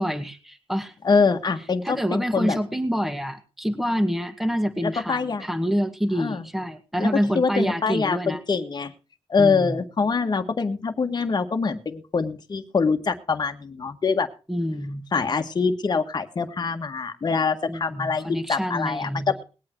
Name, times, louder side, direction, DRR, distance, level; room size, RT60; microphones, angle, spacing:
voice 1, 0.0-0.9 1.8-8.4 9.4-9.8 14.5-15.0 17.7-19.3, equal, ahead, 6 dB, 2.0 m, -27 dB
voice 2, 1.0-2.6 4.8-5.5 6.2-6.5 7.0-7.1 7.4-8.9 9.3-14.3 15.1-19.4, left 5 dB, 45° left, 5 dB, 1.7 m, -24 dB
20.0 x 8.8 x 4.6 m, 0.34 s
cardioid pair, 90°, 10 cm